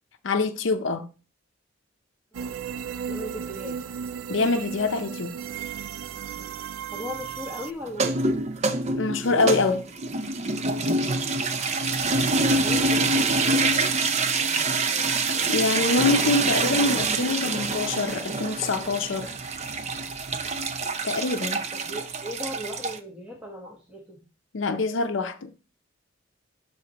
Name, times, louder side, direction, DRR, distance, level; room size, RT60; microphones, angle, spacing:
voice 1, 0.2-1.1 4.3-5.3 9.0-9.9 15.5-19.4 21.0-21.6 24.5-25.5, left 3 dB, 70° left, 0.6 m, -25 dB
voice 2, 2.3-2.6 3.1-3.8 6.3-8.4 12.0-15.8 21.7-24.2, left 1 dB, 5° right, 1.2 m, -39 dB
sound 1, 2.3-7.7, right 8 dB, 85° right, 0.4 m, -35 dB
sound 2, 7.9-23.0, right 3 dB, 35° right, 0.6 m, -26 dB
12.0 x 4.1 x 2.9 m
head